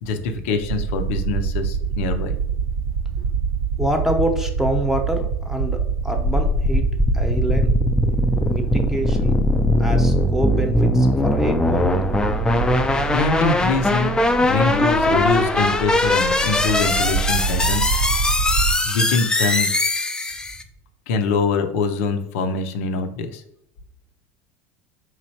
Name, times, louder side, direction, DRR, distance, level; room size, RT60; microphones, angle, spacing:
voice 1, 0.0-2.3 13.1-14.1 14.4-18.0 18.8-19.7 21.1-23.4, left 4 dB, 75° left, 5 dB, 0.5 m, -24 dB
sound 1, 0.6-18.7, right 6 dB, 75° right, 0.6 m, -26 dB
voice 2, 3.8-6.8 7.1-7.7 8.5-9.4 9.8-12.1, equal, 5° right, 3 dB, 0.8 m, -26 dB
sound 2, 6.2-20.6, left 1 dB, 10° left, 0.4 m, -20 dB
3.6 x 3.1 x 2.8 m, 0.75 s
hypercardioid pair, 85°, 7 cm